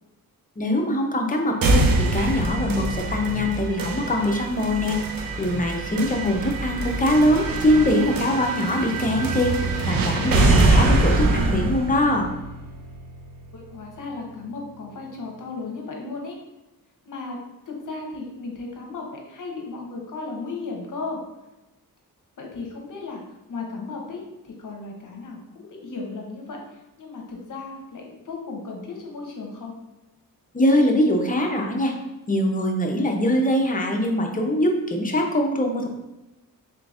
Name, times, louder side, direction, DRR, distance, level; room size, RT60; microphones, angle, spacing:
voice 1, 0.6-5.0 5.4-9.5 9.9-12.3 30.5-31.9 32.3-35.9, left 1 dB, 25° left, 2 dB, 0.5 m, -22 dB
sound 1, 1.6-13.6, right 2 dB, 70° right, 0.6 m, -24 dB
voice 2, 13.5-16.4 17.0-17.4 17.7-21.2 22.4-23.2 23.5-29.7, left 3 dB, 60° left, 0 dB, 0.8 m, -35 dB
3.8 x 3.5 x 2.4 m, 1.0 s
cardioid pair, 85°, 36 cm